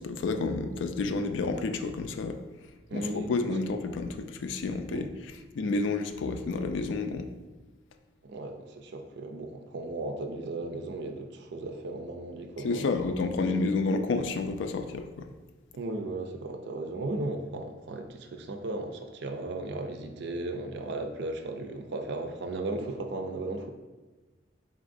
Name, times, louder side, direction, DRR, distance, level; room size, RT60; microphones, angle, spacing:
voice 1, 0.0-2.4 2.9-5.1 5.6-7.3 12.6-15.3, left 3 dB, 75° left, 7 dB, 0.3 m, -30 dB
voice 2, 2.9-3.3 4.9-5.1 8.2-12.9 15.8-23.7, right 2 dB, 65° right, 5 dB, 0.4 m, -36 dB
4.0 x 3.6 x 2.5 m, 1.2 s
head